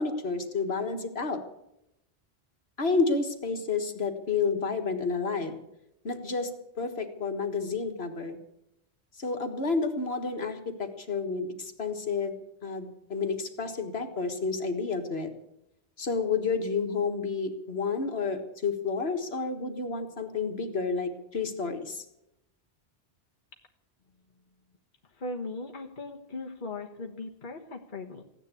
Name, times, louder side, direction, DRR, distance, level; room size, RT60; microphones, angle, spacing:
voice 1, 0.0-1.4 2.8-5.6 6.0-6.5 6.8-8.4 9.2-12.4 12.6-15.3 16.0-22.1, left 4 dB, 65° left, 6 dB, 1.9 m, -30 dB
voice 2, 25.0-28.2, left 2 dB, 50° left, 2 dB, 1.4 m, -38 dB
16.0 x 10.0 x 8.4 m, 0.84 s
omnidirectional pair, 1.1 m